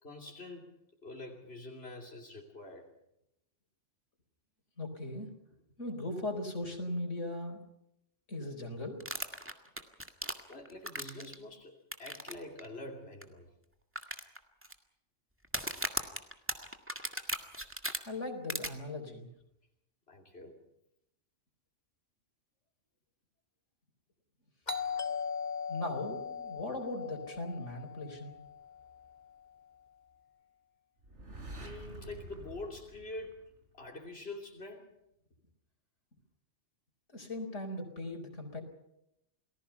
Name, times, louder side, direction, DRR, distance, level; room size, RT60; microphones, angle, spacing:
voice 1, 0.0-2.9 10.5-13.5 20.1-20.6 31.6-34.9, left 2 dB, 60° left, 0 dB, 3.2 m, -46 dB
voice 2, 4.8-5.3 5.8-7.6 8.3-9.0 18.0-19.3 25.7-28.3 37.1-38.6, left 2 dB, 85° left, 4 dB, 4.7 m, -38 dB
sound 1, 9.0-11.4 11.9-12.3 12.6-12.7 13.2-13.3 14.0-14.7 15.4-18.0 18.5-18.7, right 1 dB, 10° right, 1.9 m, -36 dB
Doorbell, 24.7-29.3, left 6 dB, 35° left, 2.0 m, -39 dB
sound 2, 31.0-33.9, right 2 dB, 75° right, 4.3 m, -48 dB
29.0 x 19.5 x 5.7 m, 0.82 s
omnidirectional pair, 1.2 m